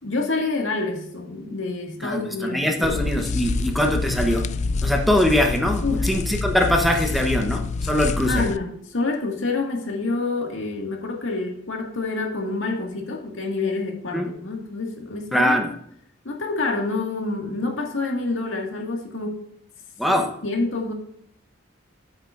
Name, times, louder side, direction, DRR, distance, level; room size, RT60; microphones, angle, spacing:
voice 1, 0.0-2.9 5.8-6.1 8.3-15.6 16.3-19.4 20.1-20.9, left 3 dB, 75° left, 1 dB, 1.8 m, -27 dB
voice 2, 2.0-4.5 4.8-8.4 14.1-14.3 15.3-15.7 20.0-20.3, left 1 dB, ahead, 3 dB, 0.9 m, -22 dB
sound 1, 2.8-8.6, left 3 dB, 40° left, 0.3 m, -26 dB
8.8 x 8.7 x 2.5 m, 0.70 s
head